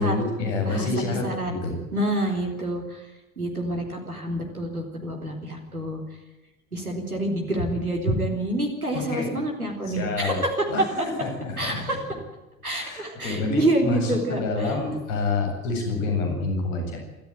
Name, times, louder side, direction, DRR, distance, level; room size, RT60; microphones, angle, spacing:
voice 1, 0.0-1.8 8.9-9.3 9.9-10.4 10.7-11.8 12.7-17.0, left 3 dB, 65° left, 4 dB, 7.9 m, -28 dB
voice 2, 0.6-1.5 1.9-3.1 3.4-6.0 6.7-10.9 11.6-12.0 12.6-14.8, right 1 dB, 90° right, 2 dB, 4.0 m, -27 dB
27.0 x 14.5 x 9.3 m, 1.0 s
figure-of-eight pair, 65°, 42 cm